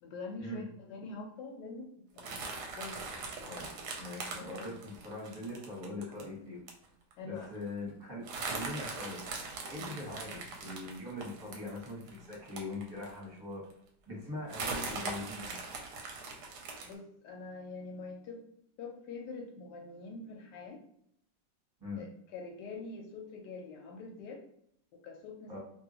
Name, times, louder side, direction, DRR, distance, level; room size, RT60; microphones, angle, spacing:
voice 1, 0.0-2.4 2.7-3.1 4.4-4.5 7.2-7.5 16.8-18.4 18.8-20.8 21.9-22.1 22.3-24.4 24.9-25.6, left 3 dB, 75° left, 2 dB, 1.1 m, -44 dB
sound 1, 2.2-6.2 6.7-6.8 7.1-7.2 7.4-7.7 8.2-13.2 13.7-13.8 14.5-16.9, right 3 dB, 70° right, 1.1 m, -41 dB
voice 2, 3.4-6.6 7.2-9.2 9.7-13.6 14.1-15.6 21.8-22.0 25.5-25.6, left 1 dB, 15° right, -5 dB, 1.1 m, -42 dB
2.8 x 2.7 x 2.8 m, 0.69 s
omnidirectional pair, 2.0 m